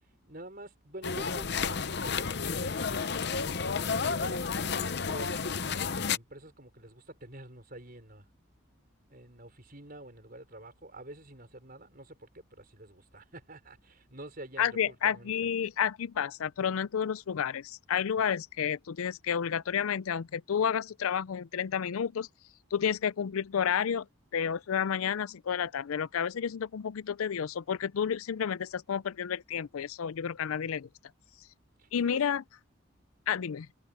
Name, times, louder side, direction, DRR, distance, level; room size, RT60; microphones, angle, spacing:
voice 1, 0.2-3.3 4.0-8.3 9.1-15.5 31.8-32.2, right 1 dB, 40° right, 5.7 m, -48 dB
sound 1, 1.0-6.2, left 5 dB, 50° left, 0.7 m, -31 dB
voice 2, 14.6-22.3 22.7-24.1 24.3-30.9 31.9-32.4 33.3-33.7, left 8 dB, 80° left, 0.4 m, -30 dB
head